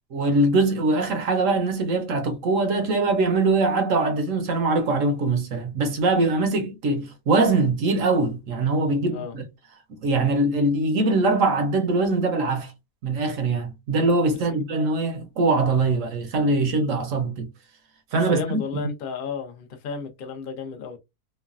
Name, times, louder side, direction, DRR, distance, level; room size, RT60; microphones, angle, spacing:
voice 1, 0.1-9.4 10.0-12.7 13.0-17.5 18.1-18.6, right 3 dB, 65° right, 1.0 m, -22 dB
voice 2, 18.3-21.0, left 5 dB, 50° left, 0.7 m, -33 dB
3.1 x 2.2 x 2.3 m
omnidirectional pair, 1.6 m